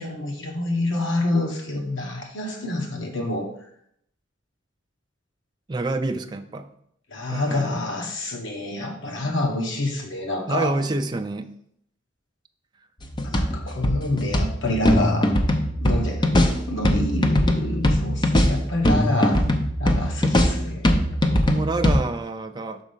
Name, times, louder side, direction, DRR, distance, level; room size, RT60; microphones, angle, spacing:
voice 1, 0.0-3.5 7.1-10.7 13.2-15.3 15.7-19.4 19.8-20.9, left 2 dB, 70° left, 0 dB, 1.5 m, -27 dB
voice 2, 5.7-6.7 7.3-7.8 10.5-11.5 20.2-20.3 21.3-22.8, right 2 dB, 20° right, 6 dB, 0.4 m, -28 dB
sound 1, 13.0-22.0, left 1 dB, 25° left, 0.7 m, -21 dB
6.2 x 4.1 x 5.6 m, 0.70 s
head